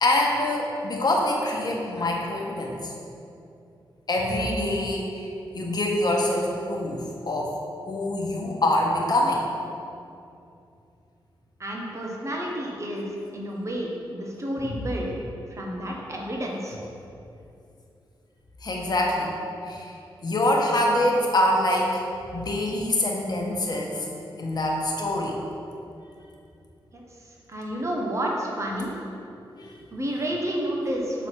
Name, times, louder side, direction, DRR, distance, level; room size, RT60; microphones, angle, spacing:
voice 1, 0.0-2.9 4.1-7.5 7.8-9.4 18.6-19.3 19.7-19.9 20.2-22.0 22.3-24.1 24.4-25.4 29.6-29.8, left 1 dB, 50° left, -1 dB, 1.2 m, -25 dB
voice 2, 11.6-15.1 15.5-16.8 26.9-27.0 27.5-28.9 29.9-31.3, equal, 35° right, -2 dB, 1.2 m, -30 dB
7.3 x 4.1 x 4.6 m, 2.6 s
cardioid pair, 60°, 9 cm